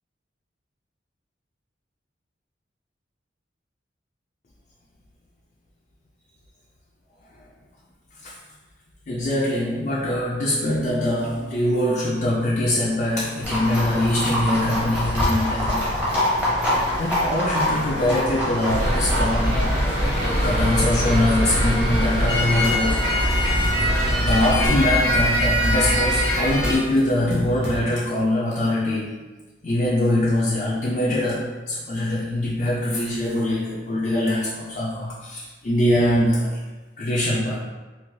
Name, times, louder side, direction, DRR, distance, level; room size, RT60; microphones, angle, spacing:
voice 1, 9.1-15.9 17.0-19.6 20.4-23.0 23.6-23.7 24.2-29.2 29.6-36.6 37.0-37.6, left 1 dB, 40° left, -6 dB, 0.4 m, -23 dB
Livestock farm animals working animals, 13.4-24.7, left 1 dB, 5° right, 0.8 m, -26 dB
sound 1, 18.6-26.7, equal, 85° right, 1.1 m, -22 dB
sound 2, 22.5-27.8, right 1 dB, 65° right, 0.5 m, -33 dB
3.1 x 2.5 x 2.6 m, 1.2 s
head